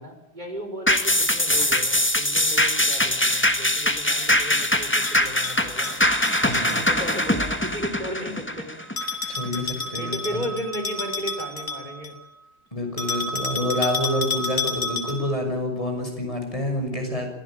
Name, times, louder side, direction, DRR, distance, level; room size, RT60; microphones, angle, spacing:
voice 1, 0.0-6.0 6.5-8.7 9.2-12.1, equal, 45° right, 5 dB, 4.8 m, -35 dB
sound 1, 0.9-9.6 10.0-10.1, left 1 dB, 10° left, 1.8 m, -22 dB
Bell, 5.1-6.8 9.0-12.2 13.0-15.4, left 3 dB, 80° left, 4.1 m, -30 dB
voice 2, 6.4-6.8 9.3-10.4 12.7-17.3, left 1 dB, 30° left, 2 dB, 6.5 m, -28 dB
25.5 x 17.0 x 8.9 m, 0.83 s
omnidirectional pair, 1.1 m